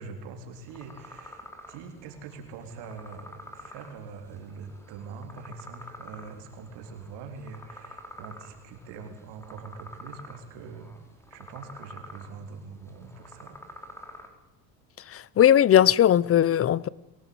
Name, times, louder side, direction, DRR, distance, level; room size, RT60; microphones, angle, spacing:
voice 1, 0.0-11.0 11.3-14.0, right 5 dB, 70° right, 3.8 m, -43 dB
sound 1, 0.5-14.3, equal, 5° left, 4.2 m, -48 dB
voice 2, 15.1-16.9, left 10 dB, 35° left, 0.8 m, -19 dB
22.0 x 18.5 x 8.7 m
supercardioid pair, 105°, 42 cm